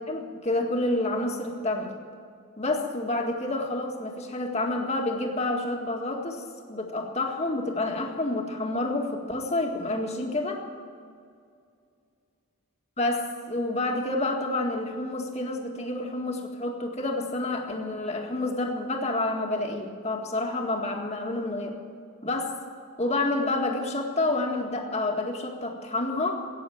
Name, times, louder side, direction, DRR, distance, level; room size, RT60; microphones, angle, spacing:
voice 1, 0.1-1.9 2.6-10.6 13.0-21.8 22.2-22.6 23.0-26.4, left 2 dB, 30° left, 2 dB, 1.9 m, -29 dB
15.0 x 9.4 x 9.1 m, 2.3 s
head